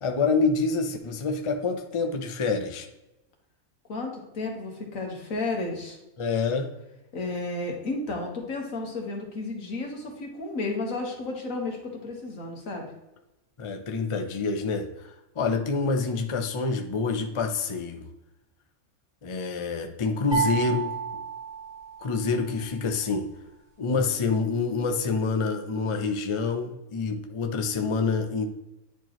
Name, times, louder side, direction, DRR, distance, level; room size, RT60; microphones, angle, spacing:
voice 1, 0.0-2.9 6.2-6.7 13.6-18.0 19.2-20.9 22.0-23.3 23.8-28.5, left 4 dB, 35° left, 5 dB, 0.5 m, -27 dB
voice 2, 3.9-6.0 7.1-12.9, left 3 dB, 75° left, 1 dB, 1.8 m, -32 dB
sound 1, 20.3-22.5, right 6 dB, 20° right, 1.9 m, -31 dB
10.0 x 4.5 x 3.0 m, 0.93 s
omnidirectional pair, 1.4 m